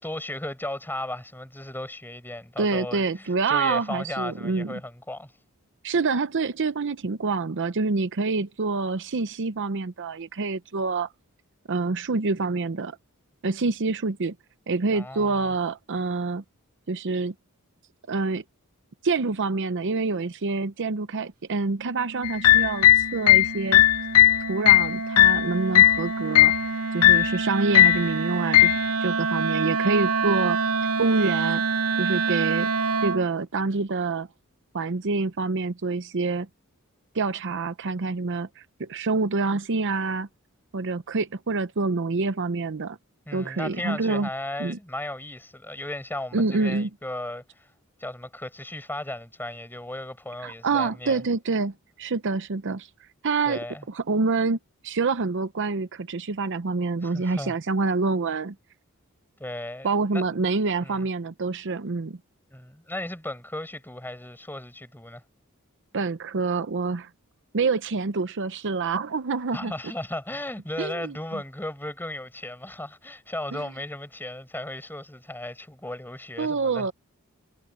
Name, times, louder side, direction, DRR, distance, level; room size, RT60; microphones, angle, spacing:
voice 1, 0.0-5.3 14.9-15.5 43.2-47.7 48.0-51.2 53.4-53.8 57.0-57.6 59.4-59.9 60.1-60.2 60.8-61.1 62.5-65.2 69.5-76.9, left 1 dB, 10° left, 5.2 m, -35 dB
voice 2, 2.6-4.8 5.8-11.1 11.7-13.0 13.4-14.4 14.7-16.4 16.9-17.3 18.1-18.4 19.0-23.8 24.5-26.5 26.9-28.7 29.0-30.6 31.0-31.6 32.0-32.7 33.0-34.3 34.7-36.5 37.1-40.3 40.7-43.0 43.3-44.3 44.6-44.8 46.3-46.9 50.4-52.9 53.2-54.6 54.8-58.5 59.8-62.2 65.9-67.1 67.5-69.7 70.8-71.1 73.5-73.6 76.4-76.9, right 4 dB, 55° right, 0.7 m, -26 dB
Wind instrument woodwind instrument, 21.8-33.3, right 4 dB, 85° right, 2.5 m, -28 dB
sound 1, 22.2-26.0 26.3-26.6 27.0-27.4 27.7-28.1 28.5-28.8, left 14 dB, 75° left, 0.5 m, -16 dB
head